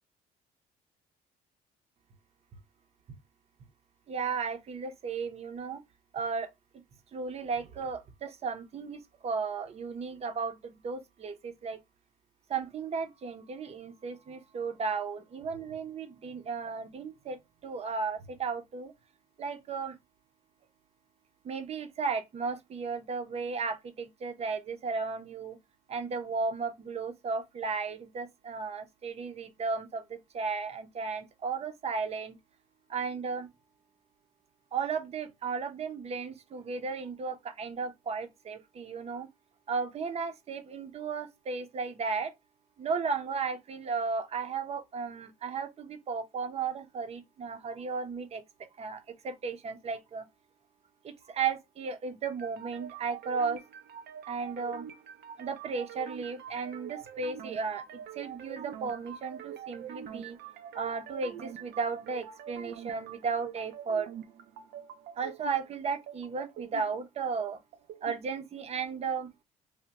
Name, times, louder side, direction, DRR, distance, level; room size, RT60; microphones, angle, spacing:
voice 1, 4.1-5.8 6.1-6.5 7.1-11.8 12.5-18.9 19.4-20.0 21.4-25.6 25.9-32.4 32.9-33.5 34.7-39.3 39.7-42.3 42.8-48.4 48.8-50.3 51.0-53.6 54.3-54.9 55.4-60.4 60.7-64.1 65.2-67.6 68.0-69.3, right 5 dB, 40° right, 0.7 m, -35 dB
sound 1, 52.2-68.2, right 9 dB, 70° right, 0.6 m, -45 dB
3.4 x 2.2 x 2.8 m
cardioid pair, 110°, 17 cm